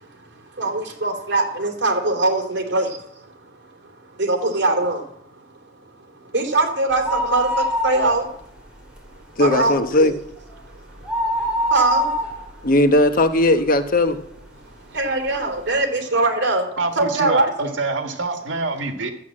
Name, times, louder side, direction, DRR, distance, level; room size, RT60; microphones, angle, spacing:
voice 1, 0.0-5.1 6.2-8.3 9.1-10.1 10.6-12.7 14.6-17.7, right 2 dB, 65° right, 2.9 m, -23 dB
sound 1, 6.9-8.6 8.9-9.0 9.4-13.8 14.4-14.5 15.2-15.3 15.6-15.7, equal, 5° right, 3.2 m, -25 dB
voice 2, 9.4-10.1 12.6-14.2, left 1 dB, 50° left, 1.0 m, -17 dB
voice 3, 16.8-19.1, right 3 dB, 90° right, 1.6 m, -26 dB
12.5 x 8.4 x 7.5 m
head